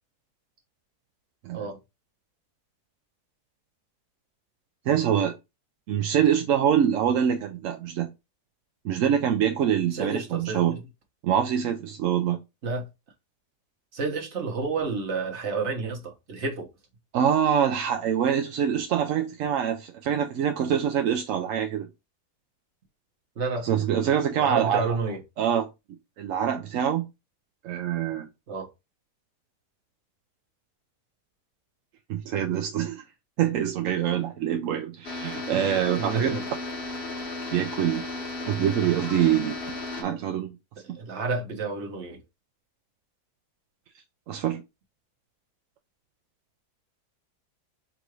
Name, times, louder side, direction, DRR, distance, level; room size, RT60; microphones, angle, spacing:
voice 1, 4.9-5.3 5.9-8.1 8.8-10.8 11.2-12.4 17.1-21.9 23.6-24.9 25.4-25.7 26.2-27.1 27.6-28.3 32.1-33.0 33.4-36.4 37.5-38.1 38.4-40.5 40.9-41.0 44.3-44.6, right 9 dB, 70° right, 0.8 m, -25 dB
voice 2, 9.9-10.8 12.6-12.9 13.9-16.7 23.4-23.7 24.4-25.2 28.5-28.7 36.0-36.4 40.9-42.2, right 4 dB, 45° right, 1.3 m, -30 dB
sound 1, 35.0-40.0, left 2 dB, 40° left, 1.4 m, -34 dB
3.7 x 2.5 x 4.6 m
omnidirectional pair, 1.7 m